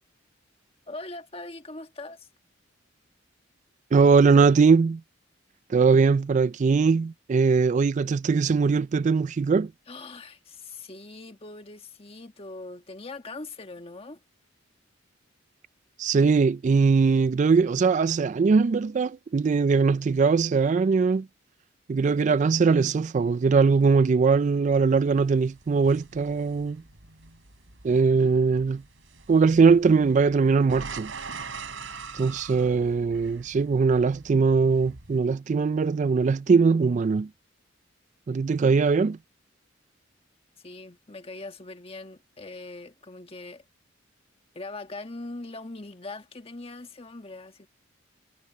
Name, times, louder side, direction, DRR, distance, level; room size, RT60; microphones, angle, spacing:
voice 1, 0.9-2.3 9.9-14.2 40.6-43.6 44.5-47.7, left 2 dB, 30° left, 1.5 m, -41 dB
voice 2, 3.9-5.0 5.7-9.7 16.0-21.3 21.9-26.8 27.8-28.8 29.3-31.1 32.1-37.3 38.3-39.2, right 5 dB, 40° right, 0.3 m, -21 dB
sound 1, 24.7-35.2, right 4 dB, 75° right, 4.1 m, -43 dB
head